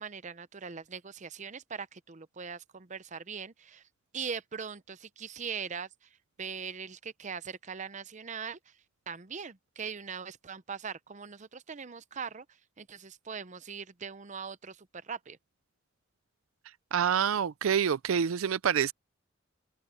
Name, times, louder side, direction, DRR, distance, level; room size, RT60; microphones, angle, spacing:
voice 1, 0.0-3.8 4.1-6.1 6.4-8.7 9.1-12.5 12.8-15.4, right 6 dB, 35° right, 0.7 m, -41 dB
voice 2, 16.9-18.9, right 8 dB, 85° right, 0.4 m, -27 dB
head